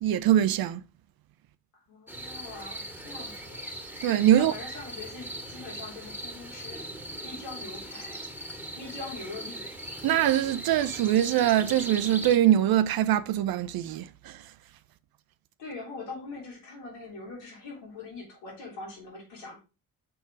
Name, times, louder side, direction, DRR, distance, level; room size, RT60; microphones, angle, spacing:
voice 1, 0.0-0.8 4.0-4.5 10.0-14.5, right 11 dB, 55° right, 0.6 m, -23 dB
voice 2, 1.7-3.6 4.3-6.9 7.2-8.2 8.7-9.7 15.6-19.6, left 3 dB, 75° left, 3.4 m, -42 dB
sound 1, 2.1-12.4, right 1 dB, 5° right, 2.0 m, -39 dB
5.5 x 4.2 x 4.9 m
hypercardioid pair, 50°, 43 cm